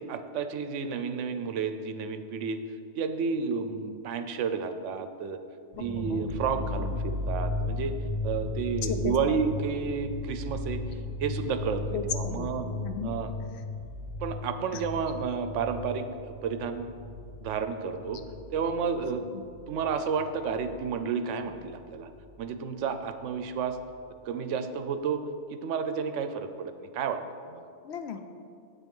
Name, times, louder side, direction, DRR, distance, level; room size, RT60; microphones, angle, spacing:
voice 1, 0.1-2.6 2.9-5.4 5.8-7.9 8.2-10.8 11.2-12.7 13.0-13.3 14.2-16.9 17.4-18.2 18.5-19.2 19.7-22.1 22.4-23.8 24.3-25.2 25.5-27.7, right 6 dB, 75° right, 9 dB, 0.9 m, -31 dB
sound 1, 5.7-20.8 21.1-22.2 22.5-22.6 23.0-23.7, left 2 dB, 20° left, 2.0 m, -36 dB
voice 2, 5.8-6.3 6.8-6.9 8.8-9.4 11.9-13.1 14.9-15.0 27.8-28.2, left 6 dB, 65° left, 7 dB, 0.8 m, -35 dB
8.3 x 6.0 x 5.3 m, 2.4 s
omnidirectional pair, 1.3 m